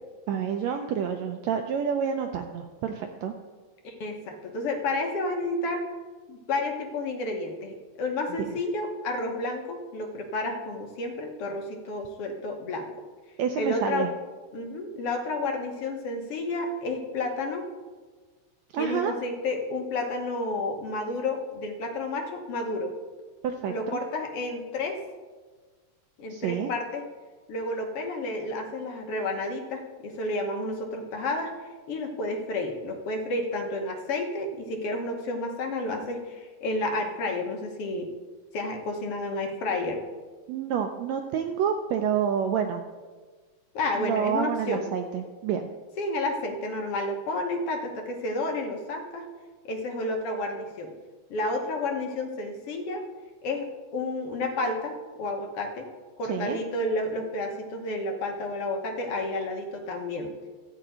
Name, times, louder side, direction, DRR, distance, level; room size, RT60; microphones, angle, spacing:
voice 1, 0.3-3.3 13.4-14.1 18.7-19.1 23.4-24.0 26.3-26.7 40.5-42.8 44.0-45.7 56.2-56.6, right 8 dB, 80° right, 5 dB, 1.6 m, -28 dB
voice 2, 3.8-5.8 6.3-12.9 13.5-14.1 14.5-17.7 18.8-22.9 23.7-25.0 26.2-27.1 27.5-31.5 31.9-38.1 38.5-40.0 43.7-44.9 46.0-49.3 49.6-50.9 51.3-53.0 53.4-55.9 56.2-60.3, left 2 dB, 60° left, 3 dB, 1.8 m, -31 dB
14.0 x 4.8 x 8.8 m, 1.4 s
omnidirectional pair, 3.7 m